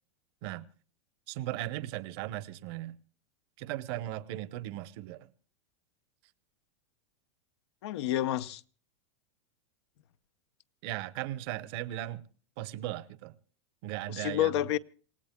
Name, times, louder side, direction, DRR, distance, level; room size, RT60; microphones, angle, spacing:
voice 1, 1.3-3.0 3.6-5.3 10.8-12.2 12.6-13.3 13.8-14.5, right 14 dB, 55° right, 0.9 m, -37 dB
voice 2, 7.8-8.6 14.1-14.8, left 13 dB, 70° left, 0.7 m, -29 dB
27.5 x 17.5 x 2.2 m
hypercardioid pair, 125°, 15 cm